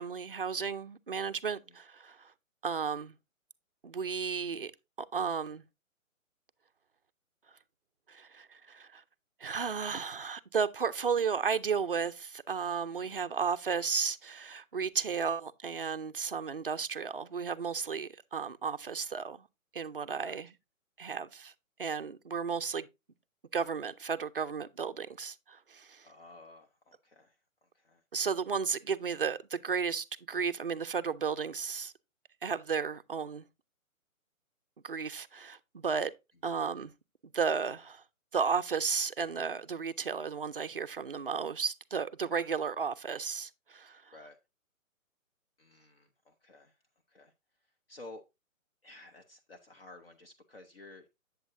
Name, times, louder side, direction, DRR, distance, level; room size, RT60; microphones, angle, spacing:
voice 1, 0.0-2.3 2.6-3.1 3.8-4.7 5.1-5.6 8.1-9.0 9.4-19.5 19.7-20.5 21.0-21.5 21.8-22.9 23.5-26.1 28.1-31.9 32.4-33.4 34.8-36.1 36.4-36.9 37.3-38.0 38.3-44.0, right 6 dB, 45° right, 0.4 m, -33 dB
voice 2, 26.0-27.4 27.7-28.0 36.5-36.6 44.1-44.4 45.6-46.8 47.1-47.3 47.9-48.2 48.8-51.1, left 2 dB, 45° left, 0.9 m, -53 dB
8.2 x 7.9 x 2.5 m
hypercardioid pair, 175°, 41 cm